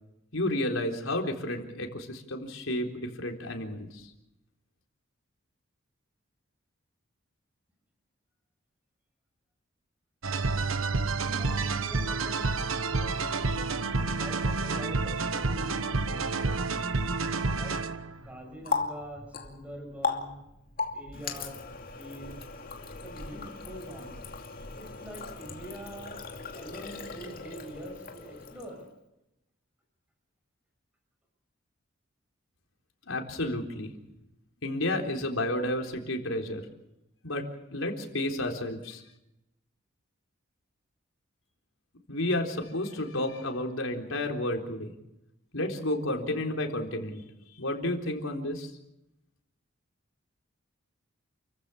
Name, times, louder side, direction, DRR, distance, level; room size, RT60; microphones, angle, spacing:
voice 1, 0.3-4.1 33.1-33.9 34.6-36.6 37.2-39.0 42.1-45.0 45.5-47.2 47.6-48.7, left 1 dB, 80° left, 3 dB, 4.0 m, -31 dB
sound 1, 10.2-18.2, right 3 dB, 85° right, 1.2 m, -29 dB
voice 2, 10.9-13.5 14.2-16.4 17.6-17.8 18.2-20.4 20.9-22.4 23.0-24.2 24.8-26.2 26.6-28.8, right 1 dB, 5° right, 2 dB, 6.3 m, -44 dB
Water tap faucet, 18.1-28.9, left 4 dB, 45° left, 2.6 m, -38 dB
29.5 x 15.0 x 7.2 m, 0.89 s
head